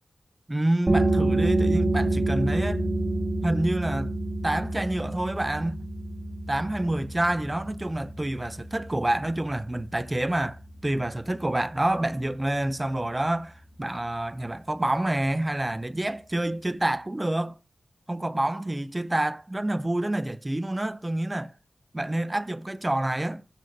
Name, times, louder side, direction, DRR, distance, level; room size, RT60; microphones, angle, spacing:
voice 1, 0.5-2.9 3.4-4.2 4.4-5.8 6.5-17.6 18.1-21.5 21.9-23.5, right 1 dB, 20° right, 0.4 m, -28 dB
sound 1, 0.9-12.2, right 2 dB, 35° right, 1.4 m, -28 dB
14.0 x 5.8 x 2.6 m
wide cardioid pair, 105°, 0 cm